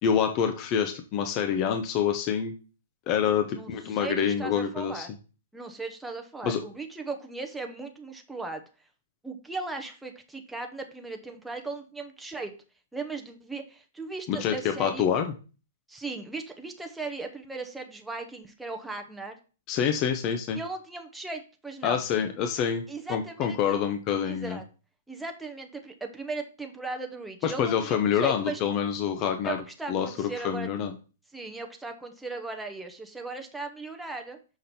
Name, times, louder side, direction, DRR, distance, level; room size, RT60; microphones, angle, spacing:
voice 1, 0.0-2.5 3.1-5.1 6.4-6.6 14.3-15.3 19.7-20.6 21.8-22.8 23.1-24.6 27.4-29.6 29.9-30.9, left 8 dB, 30° left, 6 dB, 0.8 m, -26 dB
voice 2, 3.5-5.1 5.5-8.6 9.2-12.5 12.9-15.0 15.9-19.4 20.5-22.0 22.9-23.8 24.3-24.6 25.1-28.6 29.4-30.7 31.3-34.4, right 3 dB, 5° right, 4 dB, 0.8 m, -37 dB
5.9 x 5.1 x 4.2 m, 0.35 s
hypercardioid pair, 150°, 0 cm